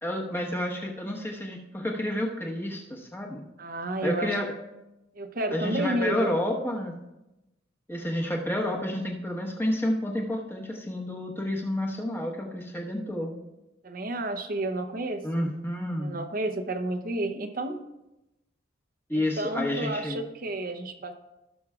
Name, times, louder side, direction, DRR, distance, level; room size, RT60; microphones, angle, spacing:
voice 1, 0.0-3.4 4.0-4.5 5.5-6.9 7.9-13.3 15.2-16.2 19.1-20.2, left 1 dB, 10° left, -1 dB, 1.2 m, -30 dB
voice 2, 3.6-4.4 5.1-6.3 13.8-15.5 16.0-17.8 19.1-21.1, right 1 dB, 45° right, 6 dB, 0.8 m, -31 dB
17.0 x 6.2 x 2.4 m, 0.97 s
head